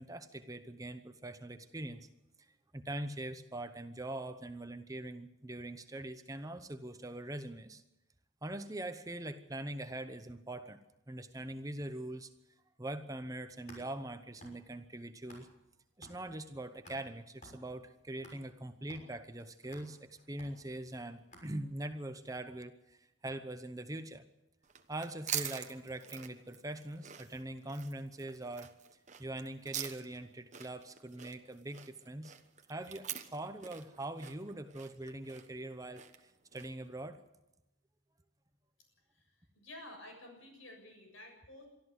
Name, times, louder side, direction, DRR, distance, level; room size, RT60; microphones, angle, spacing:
voice 1, 0.0-2.1 2.4-2.5 2.7-7.8 8.4-10.8 11.1-12.3 12.8-15.5 16.0-24.2 24.9-28.7 29.2-32.3 32.7-37.2, right 1 dB, 15° right, 9 dB, 0.9 m, -42 dB
sound 1, 13.4-15.7 16.0-22.0, equal, 35° left, 6.3 m, -58 dB
sound 2, 24.6-36.9, right 10 dB, 35° right, 1.2 m, -45 dB
voice 2, 39.1-41.6, left 1 dB, 75° left, 4 dB, 7.1 m, -52 dB
23.5 x 13.5 x 8.1 m, 0.95 s
head